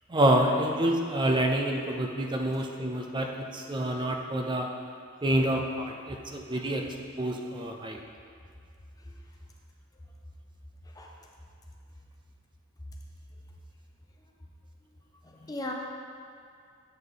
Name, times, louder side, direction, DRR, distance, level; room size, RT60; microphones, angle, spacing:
voice 1, 0.1-4.7 5.2-8.0, right 1 dB, 20° right, 2 dB, 0.5 m, -27 dB
voice 2, 10.8-11.3 14.8-14.9 15.2-15.7, left 2 dB, 15° left, 0 dB, 0.7 m, -40 dB
8.0 x 5.3 x 3.8 m, 2.3 s
head